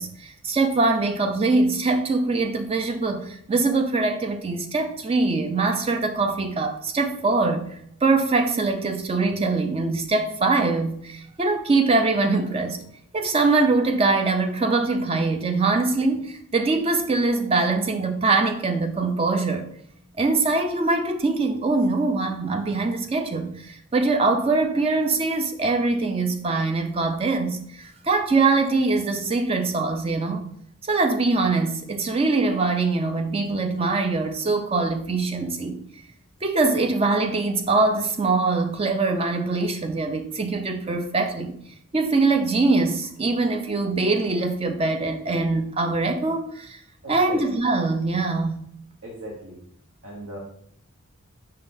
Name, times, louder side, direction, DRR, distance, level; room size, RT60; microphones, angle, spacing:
voice 1, 0.0-7.7 8.0-12.8 13.1-19.7 20.2-30.5 30.9-35.8 36.4-41.5 41.9-46.8 47.1-48.6, right 3 dB, 25° right, 0.4 m, -23 dB
voice 2, 47.0-47.4 49.0-49.6 50.0-50.4, equal, 70° right, 1.0 m, -38 dB
5.4 x 3.7 x 2.6 m
head